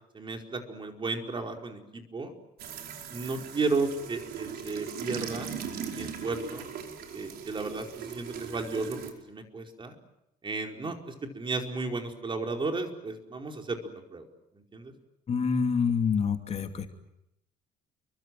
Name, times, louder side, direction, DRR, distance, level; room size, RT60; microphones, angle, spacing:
voice 1, 0.1-2.3 3.1-5.5 5.9-6.7 7.1-9.0 9.3-9.9 10.4-13.8 14.1-14.3 14.7-14.9, right 3 dB, 30° right, 3 dB, 4.8 m, -33 dB
sound 1, 2.6-9.1, right 7 dB, 65° right, 5.0 m, -39 dB
voice 2, 15.3-16.9, left 6 dB, 40° left, 5 dB, 2.8 m, -27 dB
30.0 x 24.0 x 7.7 m, 0.85 s
cardioid pair, 110°, 17 cm